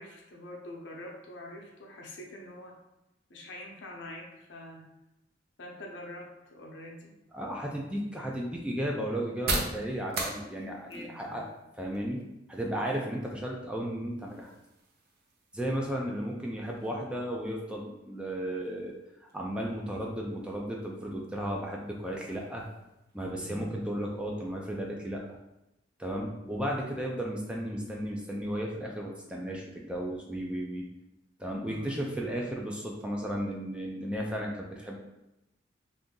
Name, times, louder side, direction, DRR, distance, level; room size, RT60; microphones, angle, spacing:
voice 1, 0.0-2.7 3.3-4.8 5.6-7.1 10.9-11.5 23.4-23.7 31.7-32.0, left 1 dB, 70° left, 0 dB, 0.7 m, -45 dB
voice 2, 7.3-11.4 11.8-12.2 12.5-14.5 15.5-18.9 19.3-22.6 23.1-25.2 26.0-30.9 31.4-35.0, equal, 5° right, -1 dB, 0.3 m, -34 dB
sound 1, 7.3-24.9, right 2 dB, 55° right, 0.5 m, -43 dB
2.7 x 2.5 x 3.7 m, 0.91 s
head